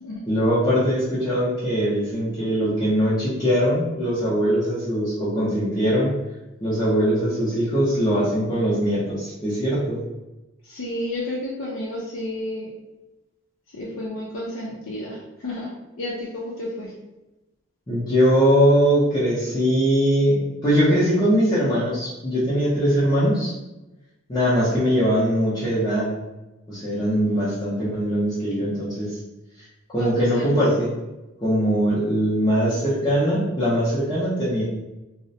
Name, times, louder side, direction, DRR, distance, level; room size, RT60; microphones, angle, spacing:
voice 1, 0.3-6.1 6.6-10.0 17.9-23.5 24.3-26.1 26.7-29.2 29.9-30.9 31.4-34.6, equal, 20° left, -10 dB, 0.5 m, -21 dB
voice 2, 10.7-12.7 13.7-15.7 16.0-16.9 27.3-27.7 30.0-30.6, left 1 dB, 75° left, -4 dB, 0.5 m, -31 dB
2.4 x 2.0 x 2.6 m, 1.0 s
head